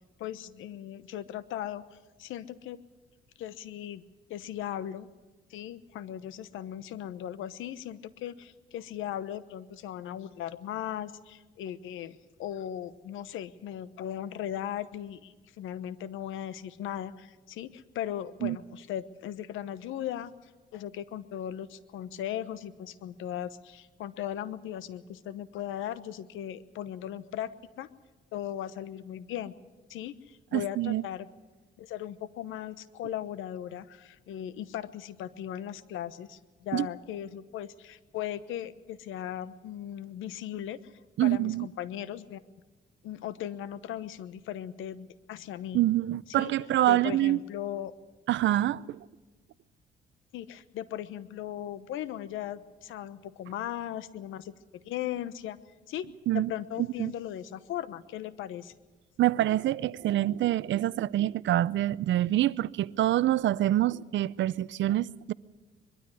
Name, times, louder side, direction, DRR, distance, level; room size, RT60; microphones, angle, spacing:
voice 1, 0.2-2.8 3.4-4.0 4.3-5.1 5.5-27.5 27.8-27.9 28.3-29.5 29.9-31.3 31.8-40.9 41.2-42.4 43.0-45.8 46.3-46.5 46.8-47.9 50.3-56.1 56.3-58.7, left 11 dB, 85° left, 1.0 m, -38 dB
voice 2, 30.5-31.0 36.7-36.9 41.2-41.7 45.7-47.4 48.3-49.0 56.3-56.5 57.0-57.1 59.2-65.3, right 14 dB, 70° right, 0.6 m, -26 dB
22.0 x 13.0 x 9.9 m
cardioid pair, 90°, 20 cm